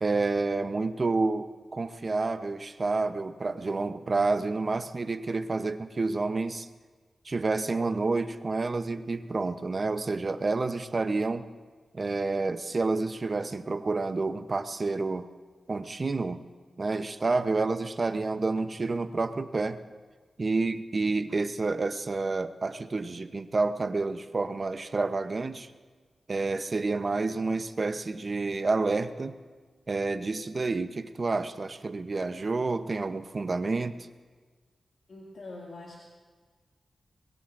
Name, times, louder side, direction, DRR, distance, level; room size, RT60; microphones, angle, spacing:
voice 1, 0.0-6.7 7.2-11.5 11.9-15.3 15.7-16.4 16.8-19.8 20.4-25.7 26.3-29.4 29.9-34.1, right 3 dB, 40° right, 10 dB, 0.7 m, -29 dB
voice 2, 35.1-36.0, left 2 dB, 70° left, -4 dB, 2.2 m, -44 dB
23.0 x 21.5 x 2.5 m, 1.4 s
wide cardioid pair, 115°, 0 cm